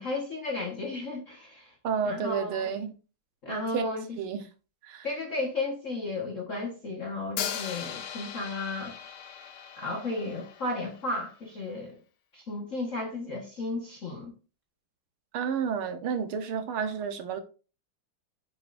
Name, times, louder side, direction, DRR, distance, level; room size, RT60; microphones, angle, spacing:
voice 1, 0.0-1.7 2.0-2.7 3.4-4.1 5.0-9.0 9.8-12.0 12.3-14.3, left 2 dB, 40° left, 1.6 m, -34 dB
voice 2, 1.8-3.0 3.5-3.8 4.2-4.4 4.8-5.1 15.3-17.4, right 7 dB, 85° right, 2.0 m, -31 dB
Hi-hat, 7.4-11.3, left 8 dB, 85° left, 1.9 m, -38 dB
9.7 x 6.8 x 2.6 m
omnidirectional pair, 2.3 m